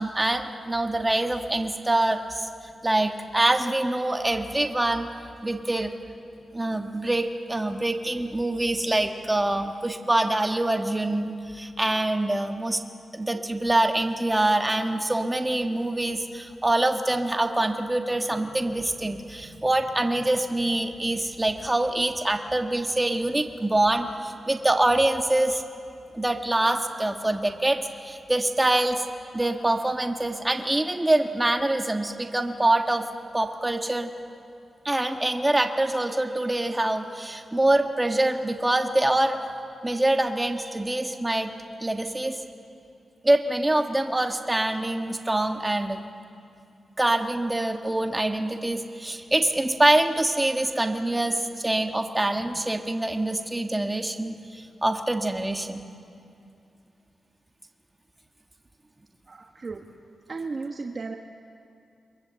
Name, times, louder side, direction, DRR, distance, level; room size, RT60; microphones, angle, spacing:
voice 1, 0.0-2.5 2.8-5.1 5.4-5.9 6.5-12.8 13.1-25.6 26.1-29.0 29.3-33.0 33.3-34.1 34.8-39.4 39.8-41.5 41.8-42.4 43.2-46.0 47.0-55.8, right 1 dB, 15° right, 4 dB, 1.6 m, -25 dB
voice 2, 59.3-59.9 60.3-61.2, right 4 dB, 45° right, 2 dB, 1.3 m, -34 dB
28.5 x 22.0 x 7.7 m, 2.6 s
cardioid pair, 75°, 0 cm